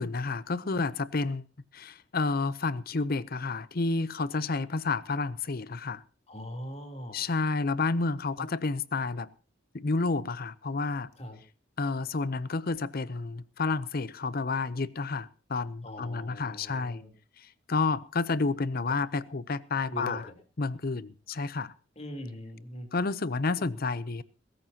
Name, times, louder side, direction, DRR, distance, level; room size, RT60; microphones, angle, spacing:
voice 1, 0.0-1.4 1.7-6.0 7.1-9.3 9.7-11.1 11.8-17.0 17.4-20.2 20.6-21.7 22.9-24.2, left 3 dB, 50° left, 0.7 m, -30 dB
voice 2, 6.3-7.2 8.4-8.5 11.2-11.4 15.8-17.1 19.9-20.4 21.9-22.9, left 1 dB, 35° left, 3.4 m, -41 dB
22.0 x 14.0 x 2.9 m
head